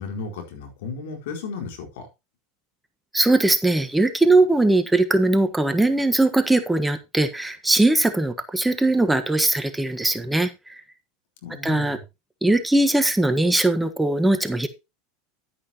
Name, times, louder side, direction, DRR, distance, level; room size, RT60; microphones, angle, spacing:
voice 1, 0.0-2.1 11.4-12.0, left 4 dB, 70° left, 4.4 m, -34 dB
voice 2, 3.1-10.8 11.6-12.0 12.4-14.7, right 2 dB, 5° right, 1.4 m, -20 dB
11.5 x 10.0 x 3.0 m
hypercardioid pair, 95°, 0 cm